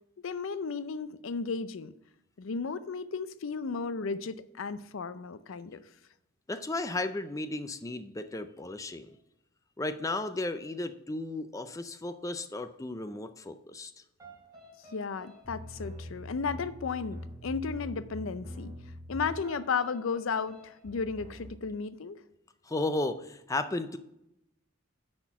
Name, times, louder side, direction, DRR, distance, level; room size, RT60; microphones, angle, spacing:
voice 1, 0.2-1.9 2.4-5.8 14.9-18.7 19.1-22.2, left 5 dB, 70° left, 15 dB, 0.5 m, -34 dB
voice 2, 6.5-9.2 9.8-13.9 22.7-24.0, left 2 dB, 15° left, 11 dB, 0.4 m, -34 dB
sound 1, 14.2-21.5, left 1 dB, 20° right, 3.3 m, -45 dB
9.9 x 4.4 x 5.8 m, 0.84 s
head